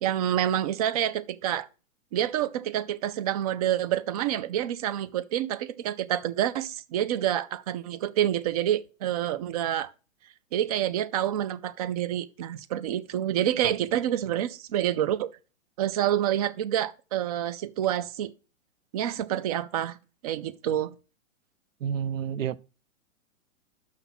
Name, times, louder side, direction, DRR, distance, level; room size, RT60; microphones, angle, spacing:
voice 1, 0.0-1.7 2.1-9.9 10.5-15.3 15.8-18.3 18.9-20.0 20.2-20.9, right 11 dB, 30° right, 0.4 m, -28 dB
voice 2, 21.8-22.6, right 8 dB, 75° right, 0.6 m, -29 dB
6.0 x 5.8 x 5.8 m
hypercardioid pair, 125°, 40 cm